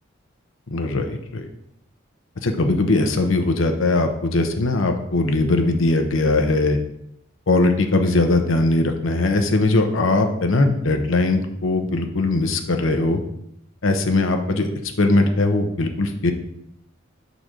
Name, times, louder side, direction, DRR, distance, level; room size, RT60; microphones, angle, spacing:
voice 1, 0.7-1.4 2.4-6.8 7.5-13.2 13.8-14.7 15.0-16.3, left 2 dB, 75° left, 5 dB, 0.8 m, -20 dB
6.1 x 4.0 x 5.0 m, 0.76 s
head